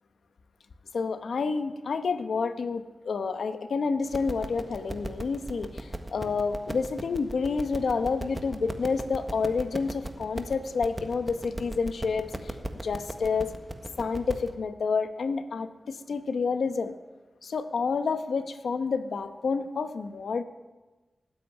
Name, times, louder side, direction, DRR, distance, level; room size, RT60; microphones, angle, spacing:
voice 1, 0.9-13.5 14.0-17.0 17.4-20.4, left 5 dB, 85° left, 9 dB, 1.0 m, -29 dB
sound 1, 4.1-14.5, right 1 dB, 20° right, 1.5 m, -38 dB
18.5 x 8.4 x 9.1 m, 1.2 s
cardioid pair, 65°, 0 cm